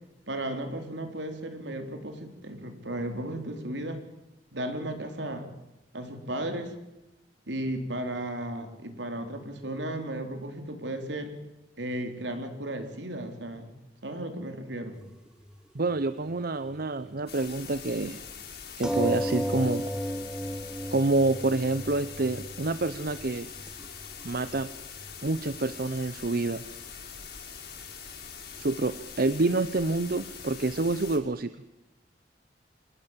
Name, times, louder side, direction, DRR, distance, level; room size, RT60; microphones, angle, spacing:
voice 1, 0.3-4.0 4.5-5.5 5.9-6.7 7.5-11.3 11.8-13.7 14.0-15.0, right 1 dB, 75° right, 6 dB, 4.0 m, -35 dB
sound 1, 15.0-15.1 15.4-15.5 18.8-23.9 24.2-24.3 24.5-24.6 25.0-25.1 25.4-25.5, equal, 5° right, 2.0 m, -33 dB
voice 2, 15.7-18.2 18.8-19.8 20.9-23.5 24.2-24.7 25.2-26.6 28.6-31.5, right 2 dB, 55° right, 13 dB, 0.9 m, -27 dB
sound 2, 17.3-31.2, left 6 dB, 65° left, 6.5 m, -43 dB
26.5 x 20.5 x 7.5 m, 0.96 s
head